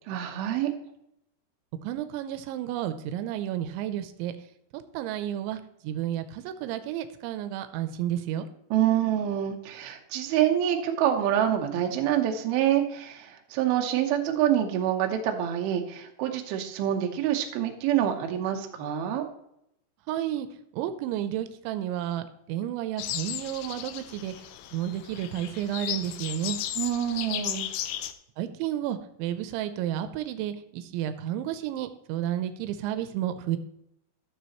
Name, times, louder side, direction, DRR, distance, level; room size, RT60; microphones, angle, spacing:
voice 1, 0.1-0.7 8.7-19.3 26.8-27.7, right 11 dB, 70° right, 3 dB, 2.5 m, -26 dB
voice 2, 1.8-4.3 4.9-8.5 20.1-20.5 20.7-24.3 24.7-26.6 28.4-33.6, right 11 dB, 90° right, 10 dB, 3.0 m, -31 dB
sound 1, 23.0-28.1, left 12 dB, 90° left, 2.3 m, -35 dB
13.5 x 6.8 x 3.0 m, 0.80 s
omnidirectional pair, 5.3 m